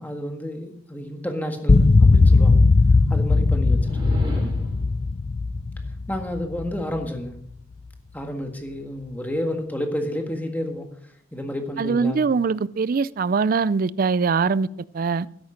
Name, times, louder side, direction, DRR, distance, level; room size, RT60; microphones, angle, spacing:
voice 1, 0.0-2.6 3.1-4.5 6.1-7.3 8.1-12.3, left 1 dB, 10° left, 1.7 m, -31 dB
sound 1, 1.7-7.0, left 3 dB, 30° left, 0.4 m, -18 dB
sound 2, 3.7-4.9, left 1 dB, 25° right, 4.3 m, -28 dB
voice 2, 11.8-14.7 14.9-15.3, right 5 dB, 45° right, 0.4 m, -22 dB
13.0 x 10.5 x 5.1 m
head